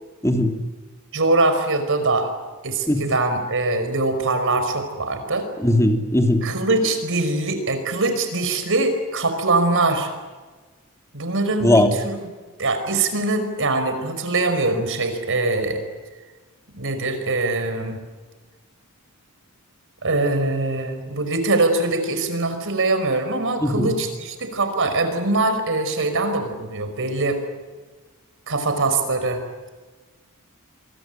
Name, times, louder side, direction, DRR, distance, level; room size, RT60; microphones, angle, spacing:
voice 1, 1.1-2.3 2.6-5.5 6.4-10.1 11.1-12.1 12.6-15.8 16.7-18.0 20.0-27.4 28.5-29.4, right 2 dB, 60° right, 8 dB, 5.1 m, -22 dB
voice 2, 5.6-6.4 11.6-11.9 23.6-23.9, left 1 dB, 15° left, 4 dB, 3.0 m, -18 dB
27.5 x 23.5 x 9.2 m, 1.3 s
head